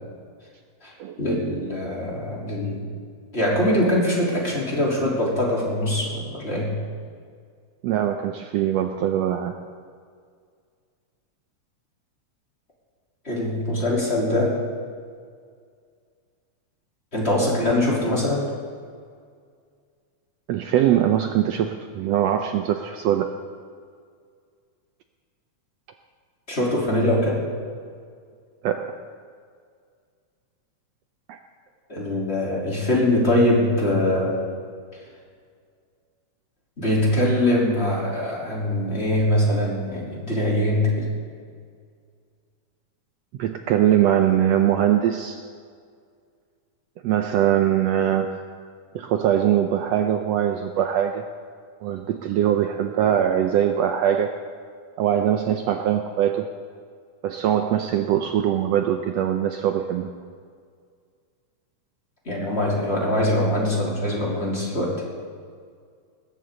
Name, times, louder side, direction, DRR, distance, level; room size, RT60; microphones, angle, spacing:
voice 1, 1.2-2.8 3.3-6.7 13.3-14.6 17.1-18.5 26.5-27.4 31.9-34.4 36.8-41.1 62.3-64.9, left 1 dB, 20° left, -4 dB, 3.8 m, -22 dB
voice 2, 7.8-9.5 20.5-23.3 28.6-28.9 31.3-31.4 43.4-45.5 47.0-48.4 48.9-51.2 51.8-54.4 55.0-56.5 57.2-60.1, right 10 dB, 75° right, 5 dB, 1.7 m, -22 dB
20.5 x 18.0 x 3.9 m, 2.1 s
omnidirectional pair, 3.3 m